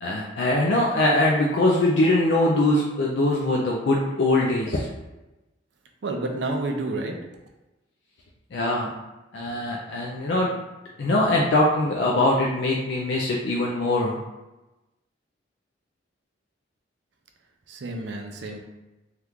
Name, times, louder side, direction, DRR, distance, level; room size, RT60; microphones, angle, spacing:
voice 1, 0.0-4.9 8.5-8.9 9.3-10.5 11.0-14.2, left 1 dB, 65° left, -2 dB, 0.4 m, -22 dB
voice 2, 6.0-7.2 17.7-18.6, right 2 dB, 60° right, 2 dB, 0.4 m, -29 dB
2.9 x 2.4 x 3.5 m, 1.1 s
head